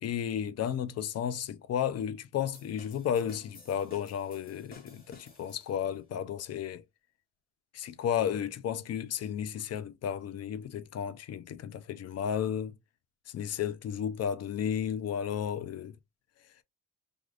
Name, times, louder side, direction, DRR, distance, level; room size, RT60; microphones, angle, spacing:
voice 1, 0.0-6.8 7.7-12.7 13.3-16.0, left 9 dB, 55° left, 0.5 m, -33 dB
sound 1, 2.5-6.0, left 2 dB, 30° left, 1.3 m, -55 dB
3.4 x 2.4 x 2.4 m
cardioid pair, 90°, 30 cm